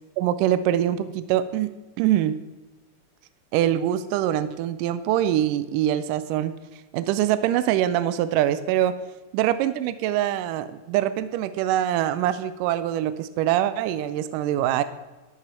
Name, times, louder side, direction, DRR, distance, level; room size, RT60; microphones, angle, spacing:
voice 1, 0.2-1.7 2.0-2.4 3.5-6.5 6.9-8.9 9.3-14.8, right 12 dB, 85° right, 13 dB, 2.1 m, -24 dB
13.0 x 8.9 x 4.3 m, 1.2 s
omnidirectional pair, 3.7 m